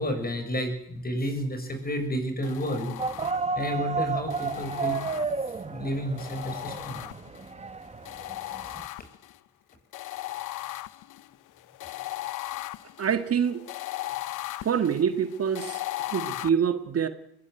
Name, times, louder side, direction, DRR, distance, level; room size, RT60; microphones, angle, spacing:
voice 1, 0.0-3.0 3.5-5.0 5.7-7.0 8.7-8.8, equal, 30° left, 8 dB, 6.5 m, -31 dB
sound 1, 2.4-3.7 4.3-5.6 6.2-7.5 8.1-9.4 9.9-16.5, left 16 dB, 85° left, 0.9 m, -37 dB
sound 2, 3.0-8.9, right 4 dB, 20° right, 1.7 m, -32 dB
voice 2, 13.0-13.6 14.6-15.8 16.1-17.1, right 7 dB, 50° right, 9 dB, 1.8 m, -25 dB
21.5 x 17.0 x 9.2 m, 0.76 s
cardioid pair, 90°, 30 cm